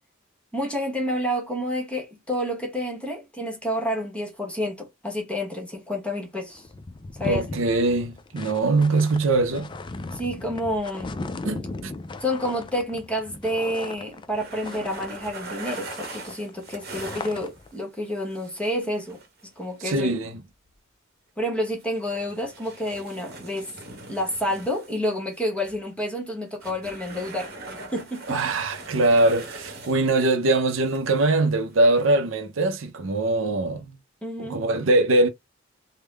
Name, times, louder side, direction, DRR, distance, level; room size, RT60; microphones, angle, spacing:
voice 1, 0.5-6.7 7.1-7.5 10.1-11.2 12.2-19.2 19.6-20.1 21.4-23.7 24.1-28.4 34.2-34.6, equal, 5° left, 1.1 m, -29 dB
sound 1, 6.2-6.3 6.5-15.5 15.7-17.7, left 3 dB, 25° left, 0.3 m, -37 dB
voice 2, 7.2-9.7 11.4-11.9 19.8-20.3 28.3-34.0 34.4-35.3, right 2 dB, 70° right, 0.6 m, -22 dB
sound 2, 14.3-17.8 18.3-19.8 21.7-25.0 25.3-25.8 26.5-30.1 30.4-30.5 30.9-31.2 31.5-31.7 32.7-32.8, right 2 dB, 50° right, 1.0 m, -41 dB
3.5 x 2.1 x 3.3 m
head